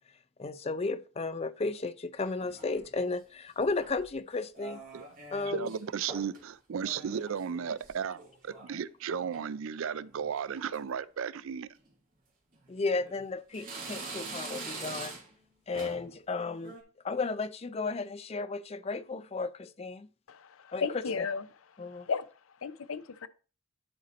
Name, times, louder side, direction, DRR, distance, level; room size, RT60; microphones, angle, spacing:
voice 1, 0.4-4.8 5.3-5.7 12.7-15.2 15.7-16.8 17.0-20.1 20.7-20.9 21.2-21.3 21.8-22.1, left 3 dB, 30° left, 0.4 m, -34 dB
sound 1, 2.2-2.9 3.6-4.1 4.6-5.8 6.1-6.4 6.7-8.7 9.0-9.5 10.1-10.4 10.7-10.8 11.8-11.9 12.5-13.2 13.5-15.4 15.7-16.1 16.5-16.8, right 3 dB, 40° right, 2.1 m, -44 dB
voice 2, 5.5-11.7, right 7 dB, 70° right, 0.4 m, -35 dB
voice 3, 20.3-21.4 21.9-22.2 22.6-23.3, left 5 dB, 75° left, 0.6 m, -34 dB
10.0 x 4.2 x 4.2 m
head